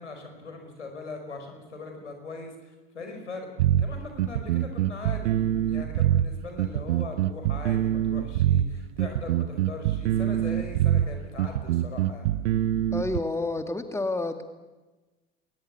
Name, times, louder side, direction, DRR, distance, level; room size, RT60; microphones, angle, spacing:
voice 1, 0.0-12.3, left 3 dB, 85° left, 4 dB, 5.1 m, -40 dB
sound 1, 3.6-13.2, right 12 dB, 70° right, 0.9 m, -24 dB
voice 2, 12.9-14.4, left 2 dB, 10° left, 7 dB, 2.0 m, -29 dB
21.5 x 21.0 x 8.5 m, 1.2 s
figure-of-eight pair, 65°, 35 cm